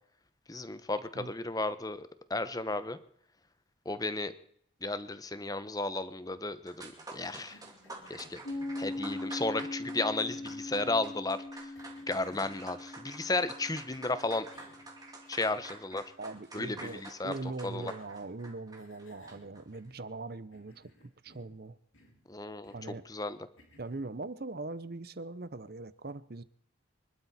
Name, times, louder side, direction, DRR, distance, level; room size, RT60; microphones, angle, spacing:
voice 1, 0.5-3.0 3.9-4.3 4.8-7.6 8.1-8.4 8.8-11.7 12.1-14.5 15.3-16.0 16.5-17.3 17.6-17.9 22.3-22.7 23.1-23.4, left 2 dB, 20° left, 0.9 m, -34 dB
sound 1, 6.4-6.5 6.7-19.6, right 2 dB, 20° right, 2.6 m, -49 dB
Cough, 6.8-9.0 9.8-11.1 11.7-12.5 13.9-14.0 14.5-14.9 15.3-15.4 16.8-17.4 18.0-18.4 18.8-20.2 20.5-21.6 21.9-22.2 22.6-23.0 23.6-24.1, left 1 dB, 85° left, 6.1 m, -60 dB
Piano, 8.4-15.7, left 2 dB, 55° left, 2.5 m, -41 dB
voice 2, 16.2-20.9 21.2-21.8 22.7-23.1 23.8-26.4, right 3 dB, 50° right, 0.8 m, -41 dB
26.0 x 12.0 x 4.3 m
head